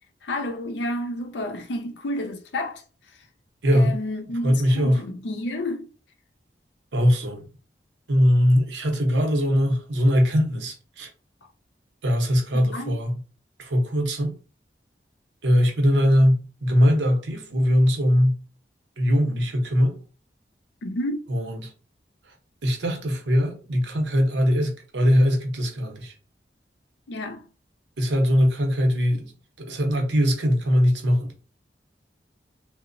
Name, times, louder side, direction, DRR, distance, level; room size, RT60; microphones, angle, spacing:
voice 1, 0.2-2.8 3.7-5.9 12.5-12.9 20.8-21.2 27.1-27.5, left 1 dB, 80° left, 0.5 m, -30 dB
voice 2, 4.4-5.0 6.9-7.5 8.1-11.1 12.0-13.1 13.6-14.3 15.4-18.4 19.0-20.0 21.3-21.7 22.6-26.1 28.0-29.3 29.6-31.3, equal, 85° right, 0.7 m, -21 dB
2.9 x 2.0 x 2.5 m
head